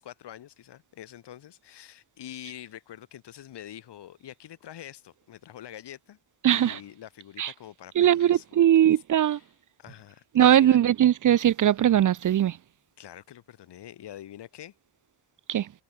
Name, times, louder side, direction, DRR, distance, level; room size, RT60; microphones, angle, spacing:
voice 1, 0.0-6.2 6.5-8.6 9.1-9.5 9.8-10.8 13.0-14.7, left 11 dB, 65° left, 7.5 m, -45 dB
voice 2, 6.4-6.8 7.4-7.5 8.0-9.4 10.3-12.6 15.5-15.7, right 11 dB, 45° right, 0.7 m, -20 dB
cardioid pair, 110°, 44 cm